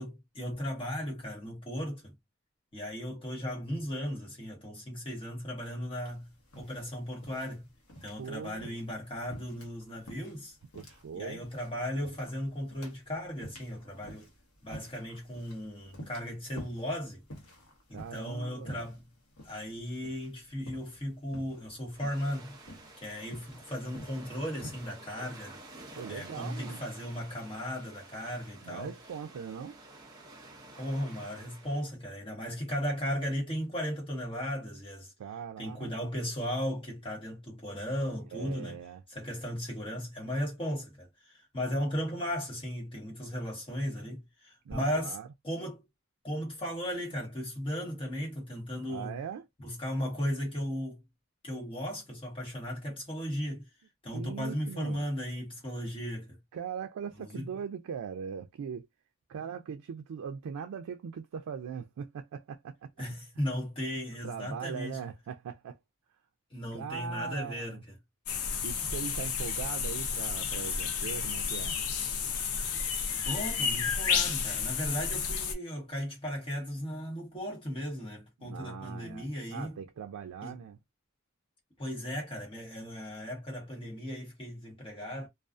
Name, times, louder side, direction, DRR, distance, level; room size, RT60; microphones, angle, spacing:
voice 1, 0.0-2.1 2.7-7.7 8.0-10.6 11.1-14.3 14.6-17.2 17.9-19.1 19.4-22.6 23.0-25.6 26.1-28.9 30.8-35.1 35.6-38.8 39.1-45.2 45.4-45.8 46.2-49.2 49.6-51.0 51.4-53.7 54.0-56.4 57.3-57.5 63.0-65.0 66.5-67.9 73.2-79.8 80.4-80.6 81.8-85.3, equal, 25° left, 1.1 m, -36 dB
sound 1, 6.0-25.0, equal, 75° left, 1.0 m, -50 dB
voice 2, 8.2-8.8 10.7-11.4 17.9-18.8 26.0-26.8 28.6-29.8 35.2-35.9 38.3-39.0 44.7-45.3 48.9-49.4 54.1-55.0 56.5-58.9 59.3-63.2 64.2-65.8 66.7-67.8 68.6-71.8 78.4-80.8, right 7 dB, 90° right, 0.3 m, -40 dB
sound 2, 21.9-31.9, right 2 dB, 15° right, 0.5 m, -51 dB
sound 3, 68.3-75.5, left 6 dB, 90° left, 0.5 m, -31 dB
2.4 x 2.3 x 2.4 m
head